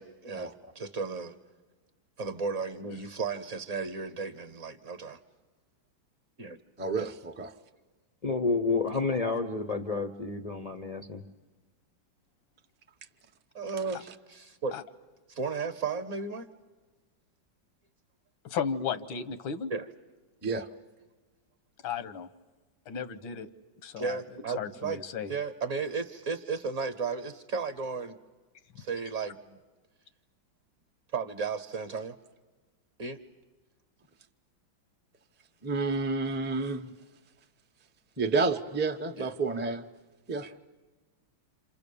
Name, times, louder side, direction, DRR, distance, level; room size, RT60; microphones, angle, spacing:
voice 1, 0.0-1.3 2.2-5.2 6.4-6.6 7.0-7.1 13.5-14.8 15.3-16.5 19.7-19.9 24.0-25.0 25.3-28.2 28.8-29.6 31.1-32.2 33.0-33.2 39.2-39.3, right 4 dB, 50° right, 9 dB, 1.2 m, -34 dB
voice 2, 6.8-7.5 20.4-20.7 35.6-36.9 38.2-39.8 40.3-40.5, right 4 dB, 15° right, 4 dB, 0.4 m, -30 dB
voice 3, 8.2-11.2, left 4 dB, 70° left, 8 dB, 0.3 m, -30 dB
voice 4, 18.4-19.7 21.8-22.3 22.9-23.5 23.8-24.2 24.6-25.3, left 7 dB, 90° left, 12 dB, 1.8 m, -34 dB
28.0 x 27.5 x 6.9 m, 1.3 s
omnidirectional pair, 2.1 m